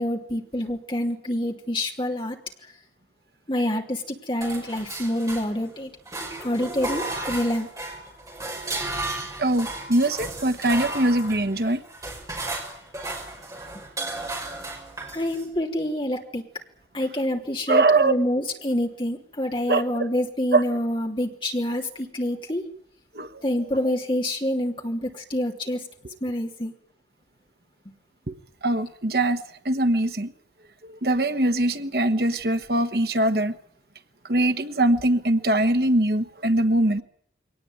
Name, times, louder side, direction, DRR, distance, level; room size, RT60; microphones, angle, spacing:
voice 1, 0.0-2.4 3.5-5.9 6.4-7.7 15.1-16.4 16.9-22.6 23.4-25.8 26.2-26.7, left 1 dB, 25° left, 1 dB, 3.2 m, -27 dB
sound 1, 4.4-5.7 6.1-15.5, right 2 dB, 20° right, 6.0 m, -34 dB
voice 2, 9.4-11.8 17.7-18.1 19.7-19.8 20.5-20.6 23.1-23.4 28.3-28.4 28.6-29.4 29.6-30.3 30.8-33.5 34.2-37.0, right 2 dB, 55° right, 9 dB, 1.3 m, -22 dB
23.0 x 18.5 x 9.4 m, 0.65 s
head